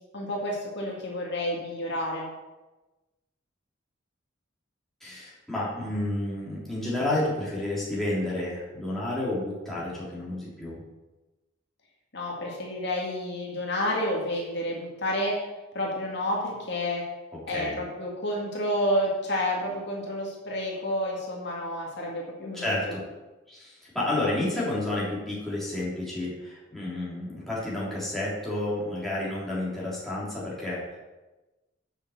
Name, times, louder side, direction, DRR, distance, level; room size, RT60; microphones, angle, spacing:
voice 1, 0.1-2.3 12.1-15.4 15.7-17.0 17.5-22.7, left 1 dB, 55° left, -2 dB, 2.1 m, -30 dB
voice 2, 5.0-10.8 17.3-17.8 22.5-23.0 23.5-31.0, left 1 dB, ahead, -8 dB, 3.2 m, -30 dB
7.1 x 6.6 x 7.2 m, 1.1 s
head